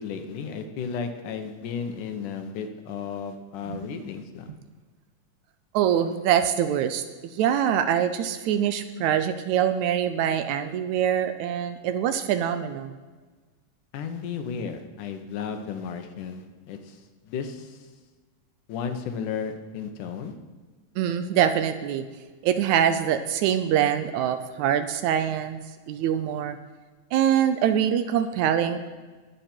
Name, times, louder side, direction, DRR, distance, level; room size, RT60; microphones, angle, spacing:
voice 1, 0.0-4.5 13.9-17.0 17.3-17.8 18.7-20.4, left 6 dB, 80° left, 7 dB, 2.5 m, -34 dB
voice 2, 5.7-7.0 7.3-12.9 21.0-22.0 22.4-25.6 25.9-26.6 27.1-28.9, right 9 dB, 80° right, 10 dB, 1.8 m, -24 dB
20.5 x 8.0 x 4.4 m, 1.4 s
omnidirectional pair, 3.6 m